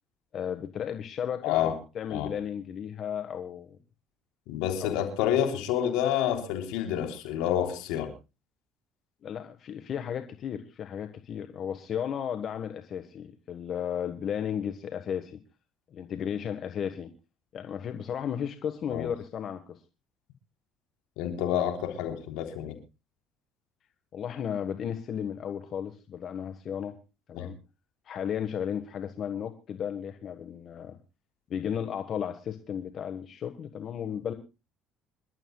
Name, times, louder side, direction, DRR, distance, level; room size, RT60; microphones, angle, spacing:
voice 1, 0.3-3.8 4.8-5.0 9.2-15.4 15.9-17.1 17.5-19.8 24.1-27.0 27.3-27.6 28.0-31.0 31.5-34.3, left 8 dB, 55° left, 9 dB, 1.4 m, -34 dB
voice 2, 1.4-1.8 2.1-2.3 4.5-8.1 18.9-19.1 21.2-22.8 27.3-27.5, left 10 dB, 80° left, 5 dB, 3.5 m, -28 dB
26.5 x 12.5 x 2.3 m, 0.28 s
supercardioid pair, 75°, 0 cm